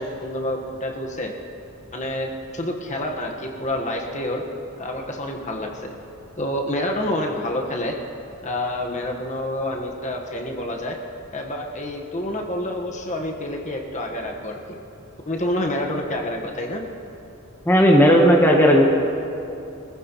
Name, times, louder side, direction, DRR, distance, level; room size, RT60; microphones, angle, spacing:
voice 1, 0.0-1.3 1.9-4.4 4.8-5.9 6.4-8.0 8.4-11.0 11.3-14.8 15.3-16.8, left 1 dB, 35° left, 1 dB, 1.3 m, -28 dB
voice 2, 17.7-18.9, equal, 10° left, -1 dB, 1.1 m, -14 dB
24.0 x 15.0 x 3.0 m, 2.7 s
head